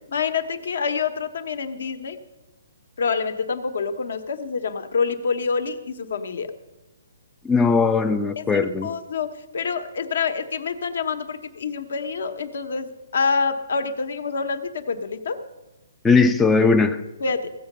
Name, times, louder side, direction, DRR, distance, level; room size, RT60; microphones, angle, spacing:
voice 1, 0.1-2.2 3.0-6.5 8.4-9.3 9.5-15.4 17.2-17.5, left 5 dB, 65° left, 9 dB, 1.1 m, -27 dB
voice 2, 7.4-8.9 16.0-17.0, left 4 dB, 5° left, 7 dB, 0.3 m, -18 dB
15.5 x 7.3 x 6.7 m, 1.0 s
hypercardioid pair, 165°, 0 cm